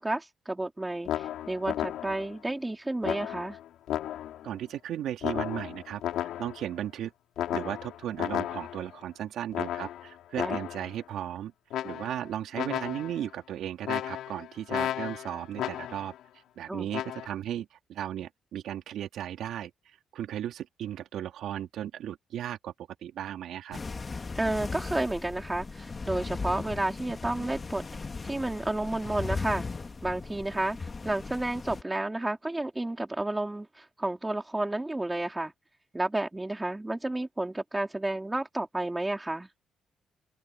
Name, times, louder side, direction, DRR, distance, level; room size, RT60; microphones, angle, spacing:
voice 1, 0.0-3.6 10.4-10.6 16.7-16.9 24.3-29.7 30.0-35.5 35.9-39.5, right 2 dB, 15° right, 3.8 m, -31 dB
sound 1, 1.1-2.4 3.0-4.5 5.2-6.7 7.4-9.0 9.5-11.0 11.7-12.3 12.5-13.3 13.8-16.2 16.9-17.3, left 12 dB, 85° left, 3.5 m, -34 dB
voice 2, 4.4-7.1 7.5-11.5 11.8-16.1 16.6-19.7 20.1-22.7 23.0-23.8, right 11 dB, 75° right, 2.9 m, -36 dB
sound 2, 23.7-31.8, left 4 dB, 30° left, 2.0 m, -37 dB
cardioid pair, 90°, 0 cm